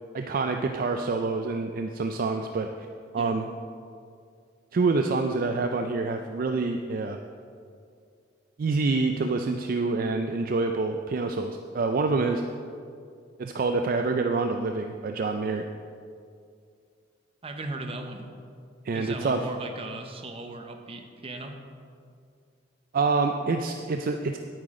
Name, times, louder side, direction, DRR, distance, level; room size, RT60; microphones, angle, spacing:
voice 1, 0.1-2.7 3.1-3.5 4.7-7.2 8.6-12.4 13.4-15.7 18.8-19.5 22.9-24.4, right 3 dB, 50° right, 5 dB, 0.4 m, -27 dB
voice 2, 17.4-18.3 18.9-21.6, right 2 dB, 30° right, 4 dB, 0.8 m, -37 dB
10.5 x 8.9 x 3.7 m, 2.3 s
head